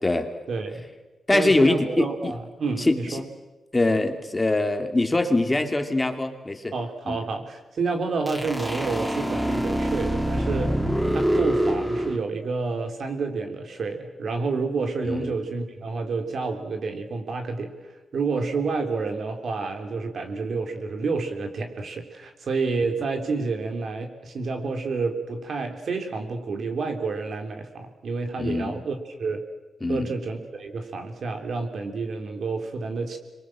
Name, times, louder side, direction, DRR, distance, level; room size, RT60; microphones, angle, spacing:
voice 1, 0.5-0.9 1.3-3.2 6.7-10.8 11.1-17.7 18.1-29.4 29.9-33.2, right 4 dB, 65° right, 4 dB, 3.4 m, -29 dB
voice 2, 1.3-2.3 2.8-3.2 3.7-6.7 7.1-7.2 15.0-15.3 28.4-28.8 29.8-30.1, left 2 dB, 20° left, 5 dB, 2.6 m, -23 dB
sound 1, 8.3-12.2, right 1 dB, 5° right, 2.3 m, -25 dB
26.5 x 22.5 x 7.6 m, 1.2 s
cardioid pair, 75°, 0 cm